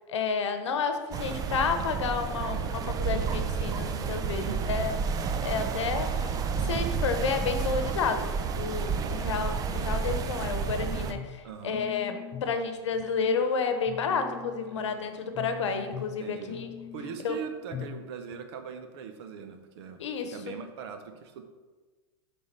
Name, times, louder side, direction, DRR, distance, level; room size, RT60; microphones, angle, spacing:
voice 1, 0.1-5.0 5.4-6.4 6.6-11.4 11.6-16.7 17.2-17.4 20.0-20.6, left 5 dB, 85° left, 8 dB, 0.9 m, -30 dB
sound 1, 1.1-11.1, right 6 dB, 25° right, 0.5 m, -30 dB
voice 2, 4.3-4.9 11.4-11.8 14.7-14.8 16.2-16.6 16.9-21.4, right 7 dB, 65° right, 6 dB, 1.0 m, -41 dB
sound 2, 10.5-11.4 11.7-12.6 12.9-13.4 13.9-15.0 15.3-16.2 16.5-17.2 17.7-18.0 18.3-18.4, left 9 dB, 35° left, 0.6 m, -42 dB
7.1 x 3.8 x 5.3 m, 1.3 s
hypercardioid pair, 120°, 15 cm